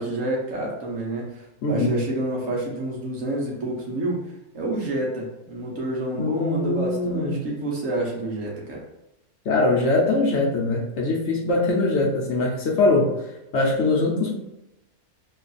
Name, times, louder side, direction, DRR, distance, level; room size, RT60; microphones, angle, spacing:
voice 1, 0.0-4.2 4.5-8.8, right 1 dB, 65° right, -2 dB, 1.3 m, -28 dB
voice 2, 1.6-2.0 6.2-7.4 9.4-13.1 13.5-14.4, left 2 dB, 60° left, -2 dB, 0.9 m, -22 dB
3.2 x 2.4 x 4.0 m, 0.91 s
omnidirectional pair, 1.5 m